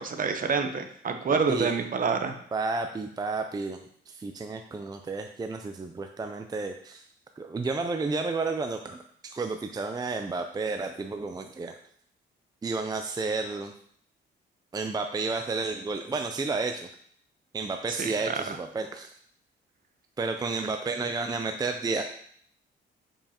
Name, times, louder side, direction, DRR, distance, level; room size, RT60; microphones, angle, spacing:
voice 1, 0.0-2.4 18.0-18.3, right 5 dB, 45° right, 7 dB, 0.9 m, -27 dB
voice 2, 1.3-1.7 2.5-3.8 4.1-7.0 7.4-11.8 12.6-13.7 14.7-16.9 17.5-19.1 20.2-22.0, right 3 dB, 20° right, 6 dB, 0.5 m, -31 dB
7.1 x 5.4 x 2.9 m, 0.63 s
cardioid pair, 90°, 20 cm